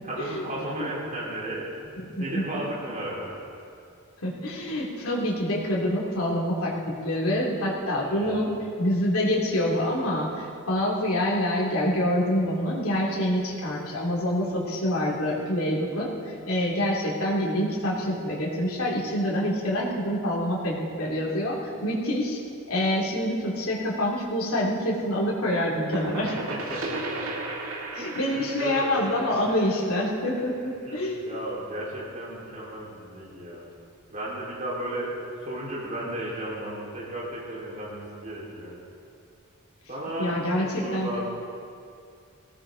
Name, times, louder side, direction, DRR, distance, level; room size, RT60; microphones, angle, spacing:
voice 1, 0.0-1.7 2.2-3.4 8.0-8.5 26.1-27.3 27.9-28.9 30.9-33.7 34.1-38.7 39.9-41.2, right 1 dB, 35° right, -6 dB, 4.2 m, -35 dB
voice 2, 2.0-2.6 4.2-8.5 8.8-22.4 22.7-26.4 27.9-31.2 40.2-41.2, left 1 dB, 85° left, -4 dB, 2.8 m, -26 dB
sound 1, 25.5-31.1, right 2 dB, 75° right, 2.1 m, -36 dB
19.0 x 16.5 x 3.9 m, 2.4 s
head